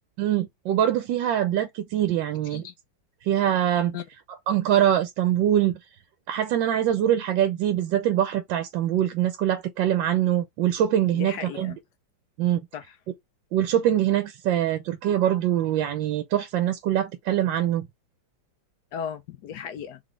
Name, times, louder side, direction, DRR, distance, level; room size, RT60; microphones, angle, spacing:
voice 1, 0.2-2.7 3.2-4.0 4.5-5.8 6.3-11.7 12.4-12.6 13.5-17.9, right 11 dB, 75° right, 1.3 m, -23 dB
voice 2, 11.1-11.8 12.7-13.0 18.9-20.0, left 8 dB, 70° left, 1.0 m, -36 dB
3.9 x 3.6 x 3.1 m
omnidirectional pair, 2.1 m